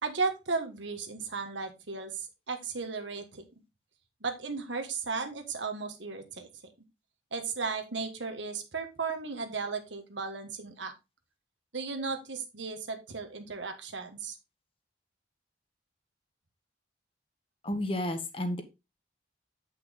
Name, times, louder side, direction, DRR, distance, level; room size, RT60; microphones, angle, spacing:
voice 1, 0.0-3.4 4.2-6.7 7.3-10.9 11.7-14.4, right 4 dB, 85° right, 5 dB, 1.5 m, -35 dB
voice 2, 17.6-18.6, left 1 dB, 30° left, 8 dB, 1.2 m, -31 dB
8.4 x 5.8 x 3.8 m, 0.25 s
head